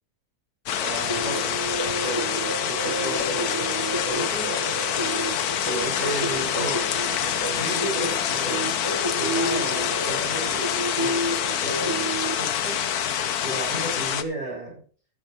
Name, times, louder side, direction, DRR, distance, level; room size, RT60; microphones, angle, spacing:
sound 1, 0.7-14.2, left 9 dB, 85° left, 1.4 m, -26 dB
voice 1, 0.8-1.6 2.0-2.3 2.7-4.6 5.6-6.8 7.3-8.6 9.2-10.7 11.0-11.4 11.6-12.0 12.4-12.8 13.4-14.7, right 2 dB, 30° left, -6 dB, 7.6 m, -33 dB
sound 2, 1.1-12.3, right 1 dB, 20° right, 1.5 m, -31 dB
13.5 x 8.7 x 4.9 m, 0.41 s
omnidirectional pair, 1.6 m